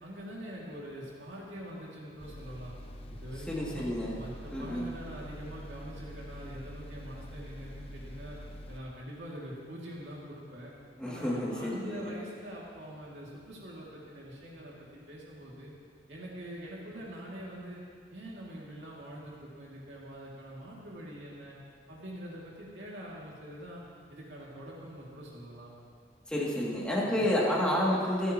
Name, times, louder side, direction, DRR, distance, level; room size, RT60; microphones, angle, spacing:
voice 1, 0.0-2.7 3.1-3.8 4.1-8.4 8.7-10.7 11.0-15.7 16.1-17.8 18.1-21.6 21.9-23.8 24.1-25.7 27.0-27.2, equal, 75° right, -5 dB, 2.6 m, -44 dB
sound 1, 2.2-8.8, equal, 35° left, 1.0 m, -45 dB
voice 2, 3.5-4.1 4.5-4.9 11.0-12.1 26.3-28.3, left 1 dB, 5° left, -6 dB, 2.6 m, -30 dB
26.0 x 9.3 x 3.1 m, 2.1 s
head